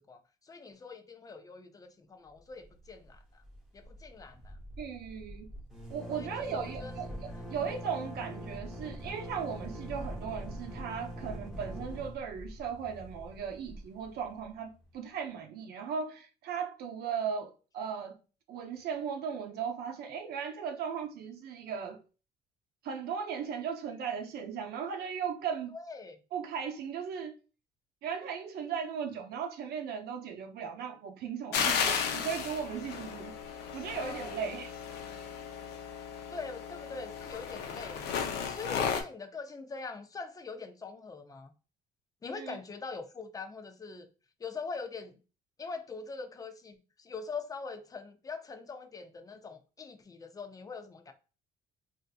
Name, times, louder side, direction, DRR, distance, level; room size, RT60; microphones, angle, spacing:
voice 1, 0.1-3.4 3.7-4.6 6.2-7.8 25.7-26.2 33.9-34.6 36.3-41.5 42.2-44.1 44.4-45.2 45.6-51.1, left 4 dB, 20° left, 0.5 m, -43 dB
sound 1, 2.6-3.2 3.4-3.6 3.8-14.5, equal, ahead, 0.9 m, -43 dB
voice 2, 4.8-5.5 5.9-7.1 7.5-18.2 18.5-22.0 22.8-25.7 26.3-27.4 28.0-34.7 42.3-42.6, right 7 dB, 70° right, 0.7 m, -37 dB
sound 2, 31.5-39.0, left 7 dB, 80° left, 0.6 m, -34 dB
3.5 x 2.6 x 2.4 m
cardioid pair, 110°, 17 cm